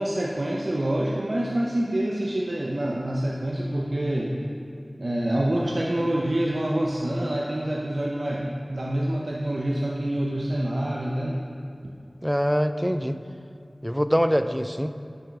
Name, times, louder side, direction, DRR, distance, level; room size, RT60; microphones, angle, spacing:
voice 1, 0.0-4.4 5.0-11.4, right 1 dB, 65° right, -3 dB, 0.7 m, -26 dB
voice 2, 12.2-13.2 13.8-14.9, equal, ahead, 10 dB, 0.4 m, -24 dB
6.4 x 6.3 x 5.9 m, 2.4 s
wide cardioid pair, 45°, 0 cm